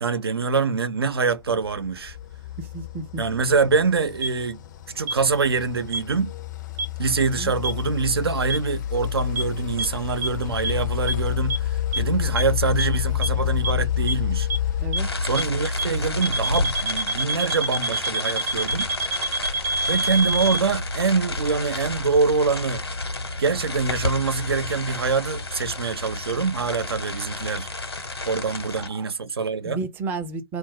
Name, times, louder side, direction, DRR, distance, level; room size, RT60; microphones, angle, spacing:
voice 1, 0.0-2.2 3.2-4.6 4.9-6.3 7.0-14.5 15.2-18.9 19.9-22.8 23.4-27.7 28.2-29.8, right 4 dB, 75° right, 0.5 m, -24 dB
sound 1, 1.5-15.9, left 11 dB, 45° left, 0.5 m, -29 dB
voice 2, 2.6-3.2 7.4-7.5 14.8-15.1 28.8-29.0 29.6-30.6, right 4 dB, 15° right, 0.5 m, -32 dB
sound 2, 4.2-4.3 5.1-5.2 5.9-6.0 6.8-6.9 7.6-7.7 8.5-8.6 9.4-9.5 9.8-9.9 10.2-10.3 10.6-10.7 11.1-11.2 11.5-11.6 11.9-12.0 12.4-12.5 12.8-12.9 13.2-13.3 13.6-13.7 14.1-14.2 14.5-14.6 14.9-15.0 15.4-15.5 15.8-15.9 16.2-20.6, right 2 dB, 45° right, 0.8 m, -25 dB
sound 3, 15.0-28.9, left 2 dB, 85° left, 1.0 m, -30 dB
2.3 x 2.0 x 3.7 m
figure-of-eight pair, 125°, 13 cm